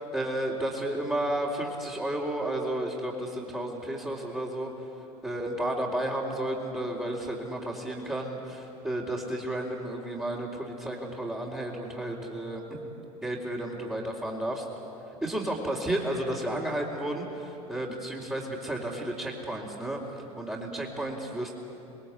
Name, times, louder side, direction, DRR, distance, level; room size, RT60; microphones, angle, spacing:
voice 1, 0.1-4.7 5.2-12.8 13.2-14.6 15.2-20.0 20.3-21.5, right 1 dB, 10° right, -6 dB, 3.9 m, -32 dB
28.0 x 21.5 x 8.3 m, 3.0 s
hypercardioid pair, 80°, 19 cm